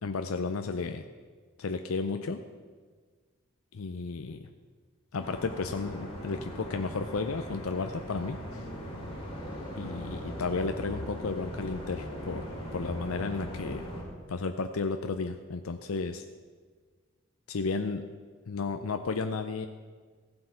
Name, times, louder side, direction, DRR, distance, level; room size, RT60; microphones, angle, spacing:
voice 1, 0.0-1.1 1.6-2.4 3.7-4.5 5.1-8.7 9.8-12.5 12.7-13.9 14.3-16.2 17.5-18.1 18.5-19.7, left 4 dB, 90° left, 7 dB, 0.6 m, -33 dB
sound 1, 5.2-14.0, equal, 25° left, 2.7 m, -39 dB
15.0 x 7.8 x 5.7 m, 1.5 s
head